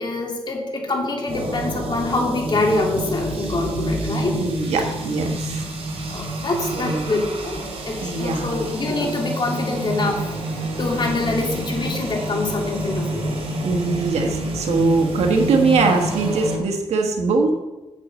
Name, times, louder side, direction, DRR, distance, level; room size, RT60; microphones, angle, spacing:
voice 1, 0.0-4.4 6.1-13.4, left 2 dB, 45° left, 0 dB, 2.9 m, -25 dB
sound 1, 1.3-16.6, right 1 dB, 65° right, 2.9 m, -28 dB
voice 2, 4.3-5.6 6.7-7.0 8.0-8.6 13.6-17.6, right 4 dB, 85° right, 2 dB, 1.5 m, -21 dB
8.4 x 6.3 x 8.0 m, 1.1 s
cardioid pair, 85°, 11 cm